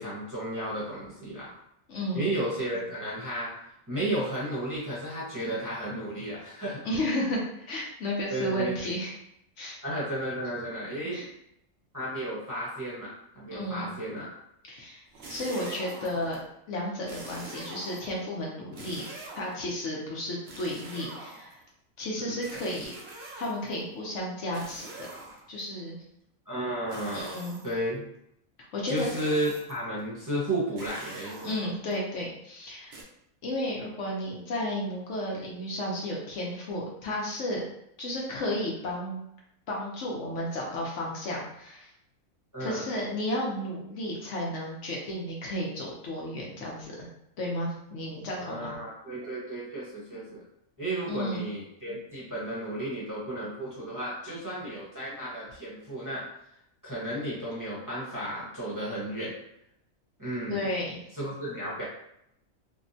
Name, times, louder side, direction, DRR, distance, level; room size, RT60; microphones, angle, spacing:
voice 1, 0.0-1.5 2.1-3.6 3.9-6.8 8.3-8.7 9.8-11.3 11.9-14.3 22.1-22.4 26.5-27.3 27.6-28.0 28.9-31.7 42.5-42.8 48.4-50.4 50.8-56.3 56.8-59.3 60.2-60.6 61.2-61.8, right 1 dB, 15° right, -8 dB, 0.8 m, -33 dB
voice 2, 1.9-2.3 6.8-9.1 9.6-9.8 11.1-11.3 13.5-13.9 14.7-15.0 15.3-16.4 16.7-19.0 19.3-21.6 22.0-22.9 23.4-24.9 25.5-25.9 27.1-27.6 28.7-29.1 31.4-32.9 33.4-37.6 38.0-39.2 39.7-41.9 42.6-47.1 47.4-48.8 51.1-51.5 60.5-61.0, left 1 dB, 65° left, -3 dB, 0.9 m, -33 dB
sound 1, 15.1-16.4 17.1-18.2 18.7-19.7 20.5-21.7 22.4-23.8 24.5-25.6 26.9-27.8 28.9-29.9 30.8-31.9 32.9-33.0, right 2 dB, 60° right, 0.8 m, -44 dB
3.5 x 2.1 x 2.6 m, 0.77 s
omnidirectional pair, 1.4 m